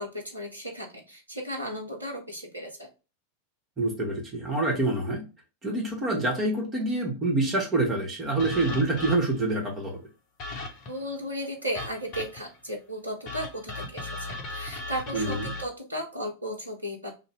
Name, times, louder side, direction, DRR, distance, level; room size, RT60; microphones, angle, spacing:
voice 1, 0.0-2.9 10.9-17.1, equal, 80° right, 1 dB, 0.6 m, -35 dB
voice 2, 3.8-5.2 5.6-10.0 15.1-15.5, right 2 dB, 20° right, -1 dB, 1.2 m, -26 dB
sound 1, 8.4-9.5 10.4-11.0 11.7-12.6 13.3-15.6, left 2 dB, 40° left, 0.7 m, -37 dB
2.6 x 2.1 x 3.2 m, 0.30 s
figure-of-eight pair, 90°, 0 cm